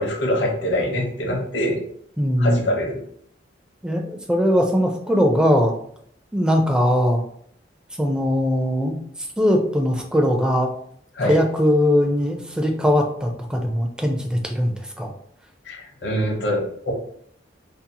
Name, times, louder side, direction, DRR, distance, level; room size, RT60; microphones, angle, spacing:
voice 1, 0.0-1.8 2.4-3.0 11.1-11.4 15.6-16.9, equal, 65° left, 0 dB, 0.8 m, -24 dB
voice 2, 2.2-2.7 3.8-5.7 6.3-7.2 8.0-9.0 9.4-10.7 11.3-15.1, equal, 5° right, 2 dB, 0.3 m, -20 dB
2.7 x 2.7 x 2.2 m, 0.65 s
head